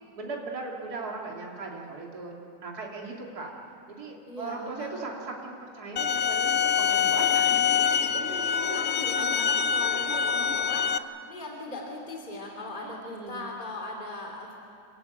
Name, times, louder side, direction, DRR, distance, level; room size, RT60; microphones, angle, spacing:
voice 1, 0.1-3.5 3.9-8.1 8.7-9.4 9.7-10.6 12.8-13.5, right 3 dB, 55° right, -1 dB, 3.1 m, -39 dB
voice 2, 4.3-5.0 8.1-14.5, left 2 dB, 25° left, 0 dB, 3.0 m, -39 dB
sound 1, 6.0-11.0, left 7 dB, 65° left, 0.7 m, -25 dB
28.5 x 16.0 x 9.1 m, 2.5 s
omnidirectional pair, 2.0 m